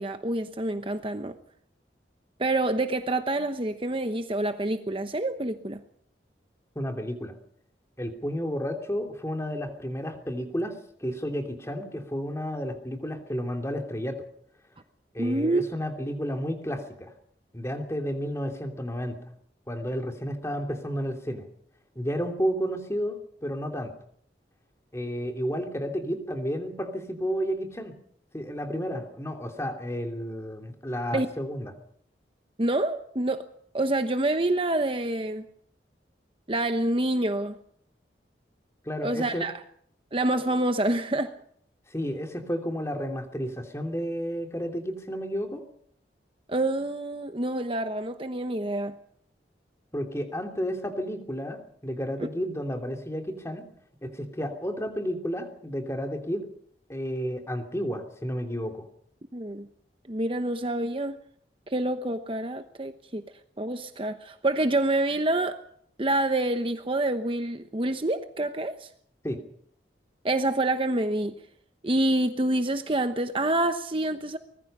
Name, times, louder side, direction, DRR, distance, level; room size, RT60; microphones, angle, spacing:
voice 1, 0.0-1.4 2.4-5.8 15.2-15.6 31.1-31.3 32.6-33.4 33.7-35.5 36.5-37.5 39.0-39.5 40.1-41.3 46.5-48.9 59.3-59.7 60.1-61.2 61.7-63.2 63.6-65.6 66.0-68.9 70.2-71.3 71.8-74.4, right 2 dB, 30° right, 1.0 m, -27 dB
voice 2, 6.7-7.3 8.0-14.2 15.1-17.1 17.5-19.2 19.7-21.5 21.9-23.9 24.9-27.9 28.3-31.7 38.8-39.4 41.9-45.6 49.9-53.6 54.0-56.5 56.9-58.9 69.2-69.4, equal, 15° left, 2.9 m, -32 dB
24.5 x 20.5 x 5.5 m
head